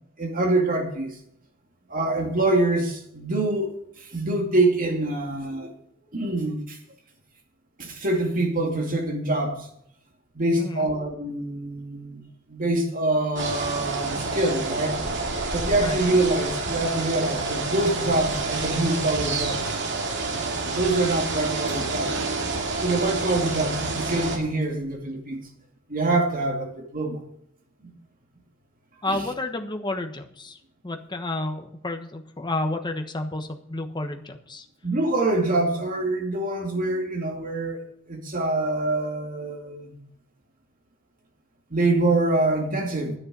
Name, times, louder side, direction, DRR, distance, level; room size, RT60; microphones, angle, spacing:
voice 1, 0.2-1.2 1.9-5.7 6.1-6.8 7.8-9.7 10.3-12.2 12.5-15.0 15.5-19.6 20.7-22.2 22.8-25.4 25.9-27.2 27.8-27.9 29.1-29.2 34.8-37.8 38.1-40.0 41.7-43.1, right 2 dB, 45° right, 2 dB, 2.5 m, -25 dB
voice 2, 10.6-10.9 15.8-16.0 29.0-30.6 30.8-34.6, left 2 dB, 20° left, 5 dB, 1.2 m, -30 dB
sound 1, 13.4-24.4, right 3 dB, 60° right, 2.4 m, -28 dB
11.0 x 9.9 x 5.4 m, 0.73 s
head